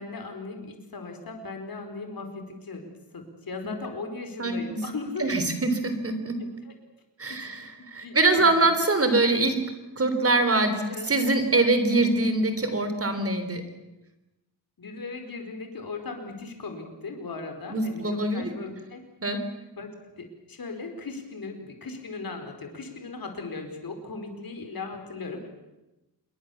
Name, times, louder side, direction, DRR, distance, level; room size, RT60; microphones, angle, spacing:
voice 1, 0.0-2.9 3.1-5.4 6.6-6.7 7.3-7.4 8.0-8.8 10.8-11.1 14.8-19.0 19.8-25.5, left 3 dB, 55° left, 6 dB, 4.6 m, -38 dB
voice 2, 5.2-6.4 7.2-9.6 10.0-13.6 17.7-18.5 19.2-19.4, right 2 dB, 35° right, 8 dB, 3.6 m, -23 dB
27.5 x 22.0 x 7.2 m, 0.99 s
wide cardioid pair, 140°, 41 cm